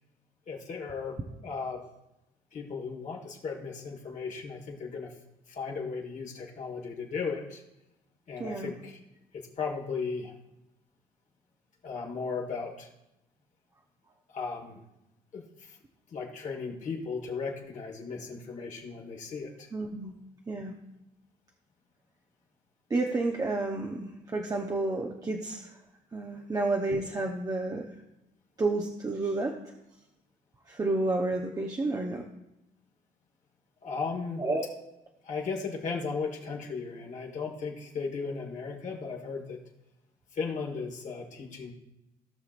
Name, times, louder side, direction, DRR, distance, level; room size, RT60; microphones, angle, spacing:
voice 1, 0.5-1.8 2.5-5.1 5.5-7.6 8.3-9.0 9.3-10.3 11.8-12.9 14.3-14.8 15.3-15.8 16.1-19.7 33.8-34.4 35.2-39.6 40.3-41.7, left 5 dB, 45° left, 0 dB, 1.5 m, -36 dB
voice 2, 8.4-8.7 19.7-20.1 20.5-20.7 22.9-25.7 26.1-27.9 28.6-29.5 30.7-32.2 34.4-34.7, right 2 dB, 20° right, 1 dB, 0.8 m, -30 dB
17.0 x 5.7 x 2.5 m, 0.92 s
cardioid pair, 110°, 17 cm